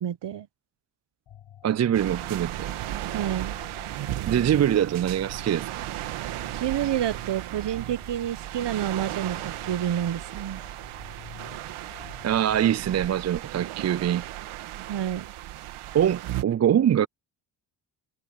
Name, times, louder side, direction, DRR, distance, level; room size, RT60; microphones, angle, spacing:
voice 1, 0.0-0.5 3.1-3.6 6.5-10.6 14.9-15.3, right 10 dB, 55° right, 1.3 m, -29 dB
sound 1, 1.3-13.1, left 10 dB, 70° left, 6.3 m, -50 dB
voice 2, 1.6-2.7 4.2-5.9 12.2-14.2 15.9-17.1, right 10 dB, 35° right, 0.5 m, -23 dB
sound 2, 1.9-16.4, right 14 dB, 80° right, 2.2 m, -35 dB
supercardioid pair, 55°, 50 cm